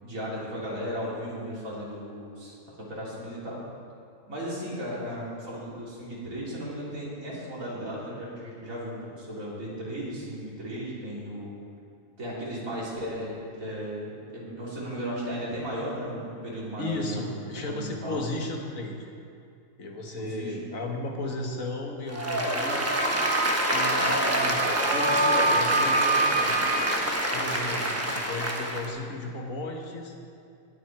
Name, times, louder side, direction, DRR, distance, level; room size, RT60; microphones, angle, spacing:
voice 1, 0.0-3.6 4.3-11.6 12.2-17.3 17.7-18.2 20.2-20.6 27.9-28.1, equal, 85° right, -6 dB, 3.5 m, -35 dB
voice 2, 16.8-19.1 19.8-23.0 23.7-26.7 27.3-30.1, left 2 dB, 85° left, 1 dB, 1.8 m, -35 dB
Applause, 22.1-28.9, equal, 10° right, 1.0 m, -26 dB
Wind instrument woodwind instrument, 22.7-27.0, right 4 dB, 70° right, 1.3 m, -28 dB
18.5 x 7.7 x 4.7 m, 2.4 s
omnidirectional pair, 1.4 m